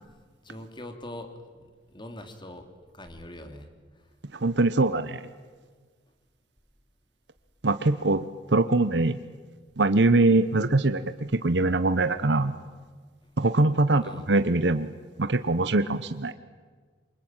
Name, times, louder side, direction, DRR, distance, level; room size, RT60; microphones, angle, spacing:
voice 1, 0.4-2.7 2.9-3.7 14.0-14.3, left 1 dB, 25° left, 7 dB, 3.0 m, -42 dB
voice 2, 4.3-5.3 7.6-8.2 8.5-9.2 9.8-12.5 13.4-14.9 15.2-16.3, right 2 dB, 70° right, 11 dB, 1.0 m, -23 dB
27.5 x 24.0 x 9.0 m, 1.5 s
head